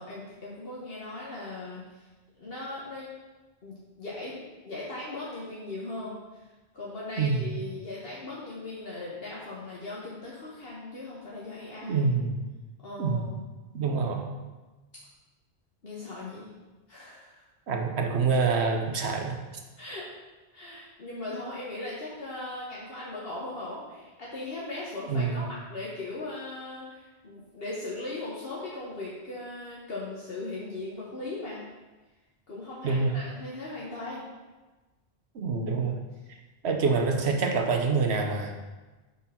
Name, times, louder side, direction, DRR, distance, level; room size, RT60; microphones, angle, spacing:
voice 1, 0.0-2.1 2.4-3.1 3.6-6.4 6.7-12.1 12.8-13.4 15.8-16.5 16.9-17.4 19.8-20.1 20.5-31.6 32.5-34.2, left 2 dB, 65° left, -6 dB, 1.5 m, -38 dB
voice 2, 7.2-7.5 11.9-12.4 13.0-13.3 13.7-14.3 17.7-19.4 25.1-25.5 32.8-33.1 35.3-36.0 36.6-38.5, right 4 dB, 80° right, 4 dB, 1.2 m, -26 dB
8.0 x 4.2 x 5.8 m, 1.2 s
omnidirectional pair, 1.1 m